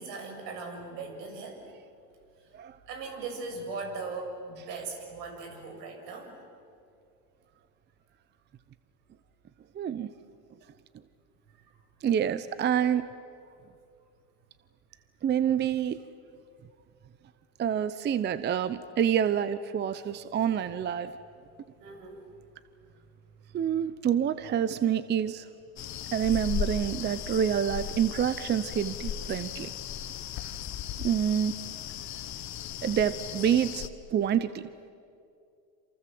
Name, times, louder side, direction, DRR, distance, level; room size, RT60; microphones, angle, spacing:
voice 1, 0.0-1.6 2.4-6.3 21.8-22.2, right 3 dB, 70° right, 4 dB, 7.2 m, -39 dB
voice 2, 9.7-10.1 12.0-13.0 15.2-16.0 17.6-21.1 23.5-25.5 26.1-29.7 31.0-31.5 32.8-34.7, right 9 dB, 20° right, 14 dB, 0.7 m, -27 dB
sound 1, 25.8-33.9, left 9 dB, 35° left, 1.3 m, -36 dB
28.0 x 27.0 x 7.8 m, 2.4 s
hypercardioid pair, 110°, 50 cm